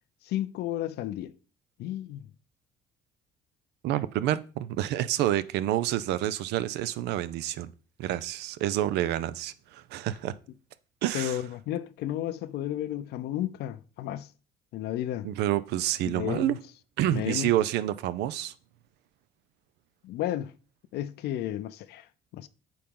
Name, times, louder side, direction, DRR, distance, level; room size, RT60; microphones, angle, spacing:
voice 1, 0.2-1.3 1.8-2.3 11.1-14.3 14.7-15.3 16.1-16.6 17.1-17.5 20.0-20.5 20.9-22.1 22.3-22.5, left 12 dB, 75° left, 0.5 m, -32 dB
voice 2, 3.8-7.7 8.0-10.3 11.0-11.4 15.2-16.6 17.0-18.5, right 13 dB, 85° right, 0.5 m, -28 dB
8.5 x 4.0 x 3.7 m
cardioid pair, 110°, 17 cm